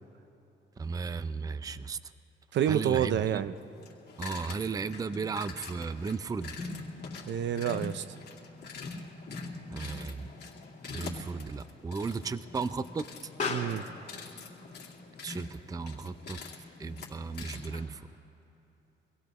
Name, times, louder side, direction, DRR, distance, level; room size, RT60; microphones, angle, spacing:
voice 1, 0.8-2.0 2.7-3.4 4.2-6.6 9.7-10.3 10.9-13.1 15.2-16.5 16.8-18.1, right 4 dB, 20° right, 14 dB, 0.4 m, -35 dB
voice 2, 2.5-3.5 7.3-8.0 13.5-13.8, right 10 dB, 65° right, 13 dB, 0.6 m, -28 dB
sound 1, 3.5-17.9, left 3 dB, 55° left, 2.3 m, -44 dB
Explosion, 9.2-18.2, left 4 dB, 40° left, 2.8 m, -44 dB
24.5 x 16.5 x 3.0 m, 3.0 s
cardioid pair, 90°, 20 cm